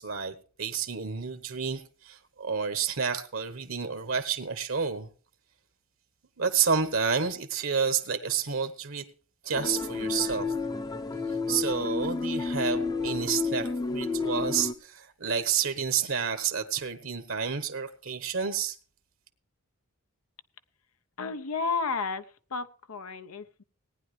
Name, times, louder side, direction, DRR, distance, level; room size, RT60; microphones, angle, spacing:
voice 1, 0.0-5.1 6.4-9.0 9.4-10.5 11.3-18.8, right 6 dB, 65° right, 9 dB, 1.2 m, -30 dB
sound 1, 9.5-14.7, left 4 dB, 20° left, 0.6 m, -30 dB
voice 2, 21.2-22.2 22.5-23.6, left 4 dB, 85° left, 11 dB, 0.8 m, -32 dB
18.5 x 9.9 x 3.2 m, 0.40 s
head